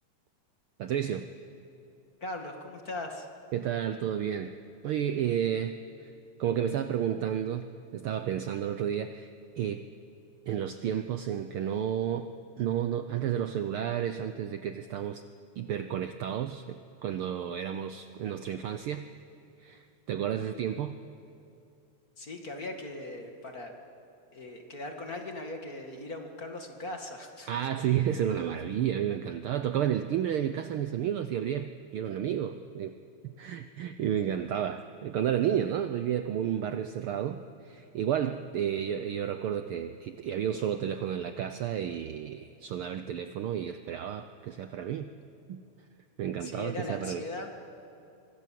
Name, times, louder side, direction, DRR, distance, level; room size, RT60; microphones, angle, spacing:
voice 1, 0.8-1.3 3.5-4.5 4.8-6.1 6.4-9.3 9.6-9.9 10.5-12.3 12.6-15.2 15.6-19.1 19.6-21.0 27.5-33.0 33.4-45.1 45.5-45.6 46.2-47.2, right 9 dB, 85° right, 9 dB, 1.2 m, -31 dB
voice 2, 2.2-3.3 22.2-23.7 24.3-27.7 46.4-47.5, left 2 dB, 35° left, 3 dB, 2.1 m, -39 dB
26.0 x 24.0 x 7.6 m, 2.6 s
omnidirectional pair, 3.3 m